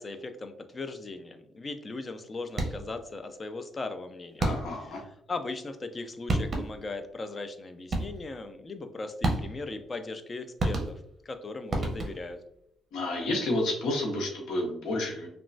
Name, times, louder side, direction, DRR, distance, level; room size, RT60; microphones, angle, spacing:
voice 1, 0.0-4.5 4.9-12.4, left 3 dB, 30° left, 8 dB, 0.4 m, -38 dB
sound 1, 2.5-3.0 4.4-4.9 5.9-6.0 6.3-6.9 7.9-8.4 9.2-9.8 10.6-11.3 11.7-12.4, right 2 dB, 40° right, 0.6 m, -30 dB
voice 2, 4.4-5.0 12.9-15.3, left 1 dB, 85° left, 0 dB, 0.8 m, -30 dB
2.9 x 2.2 x 2.6 m, 0.73 s
cardioid pair, 90°, 0 cm